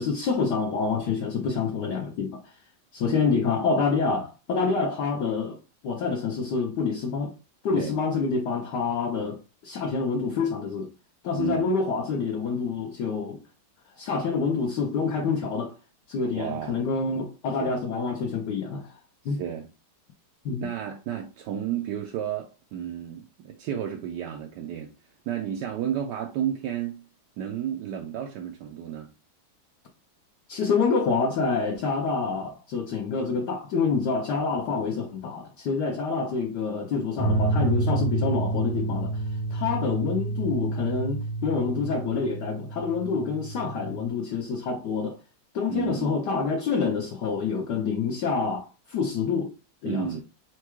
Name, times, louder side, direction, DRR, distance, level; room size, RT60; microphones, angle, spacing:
voice 1, 0.0-2.5 2.9-5.6 5.8-7.3 7.6-9.4 9.6-10.9 11.2-13.4 14.0-15.7 16.1-18.9 19.2-19.4 20.4-20.7 30.5-45.2 45.5-49.5 49.8-50.1, left 5 dB, 65° left, 1.2 m, -27 dB
voice 2, 11.3-11.7 16.3-16.8 17.6-17.8 19.3-19.7 20.6-24.9 25.3-27.1 27.4-29.1 45.7-46.2 49.9-50.2, right 9 dB, 75° right, 1.1 m, -32 dB
sound 1, 37.2-44.1, right 2 dB, 85° left, 1.8 m, -29 dB
4.6 x 2.2 x 4.4 m
omnidirectional pair, 2.2 m